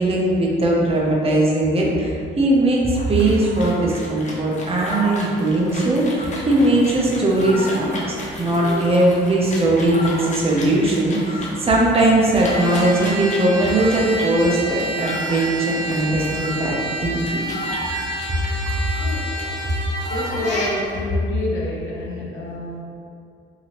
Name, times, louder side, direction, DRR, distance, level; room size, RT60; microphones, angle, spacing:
voice 1, 0.0-17.5, right 1 dB, 30° right, -3 dB, 0.7 m, -19 dB
sound 1, 2.9-21.1, left 1 dB, 35° left, 0.7 m, -33 dB
Trumpet, 12.3-20.9, right 1 dB, 70° right, 0.6 m, -29 dB
voice 2, 20.1-22.8, left 1 dB, 85° left, -3 dB, 0.5 m, -26 dB
2.8 x 2.7 x 2.9 m, 2.5 s
cardioid pair, 90°, 20 cm